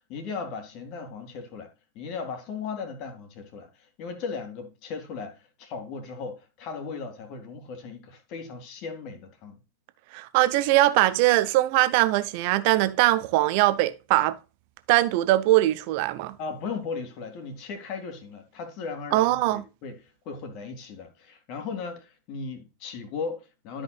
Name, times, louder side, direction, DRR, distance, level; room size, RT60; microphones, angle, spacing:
voice 1, 0.1-1.7 1.9-9.6 16.4-23.8, left 5 dB, 40° left, 2.3 m, -37 dB
voice 2, 10.1-14.4 14.9-16.3 19.1-19.6, right 17 dB, 45° right, 0.8 m, -21 dB
13.0 x 5.3 x 2.4 m
figure-of-eight pair, 90°, 0 cm